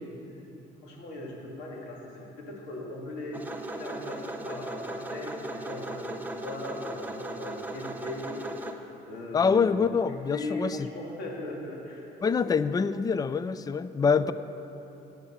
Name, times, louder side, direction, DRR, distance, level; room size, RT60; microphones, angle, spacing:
voice 1, 0.8-3.5 3.8-8.6 9.1-9.8 10.1-12.3 12.6-12.7 14.2-14.3, left 2 dB, 80° left, -3 dB, 2.6 m, -39 dB
sound 1, 3.3-8.7, right 2 dB, 10° right, 0.9 m, -37 dB
voice 2, 9.3-10.9 12.2-14.3, left 5 dB, 20° left, 14 dB, 0.4 m, -25 dB
10.5 x 9.1 x 7.2 m, 3.0 s
cardioid pair, 110°, 17 cm